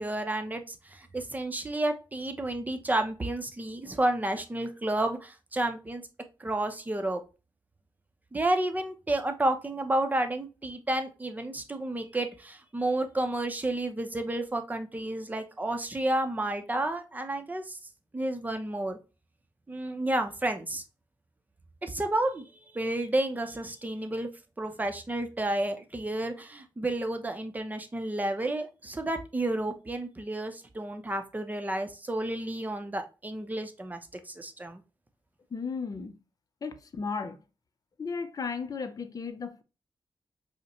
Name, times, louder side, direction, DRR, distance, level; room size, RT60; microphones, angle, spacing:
voice 1, 0.0-6.0 6.4-7.2 8.3-17.8 18.1-19.0 19.7-20.8 21.8-22.5 22.7-24.3 24.6-34.0 34.3-34.8, right 1 dB, 20° right, 0.7 m, -31 dB
voice 2, 35.5-36.2 36.6-37.4 38.0-39.6, left 5 dB, 45° left, 0.6 m, -35 dB
5.1 x 2.1 x 2.9 m
wide cardioid pair, 105°, 9 cm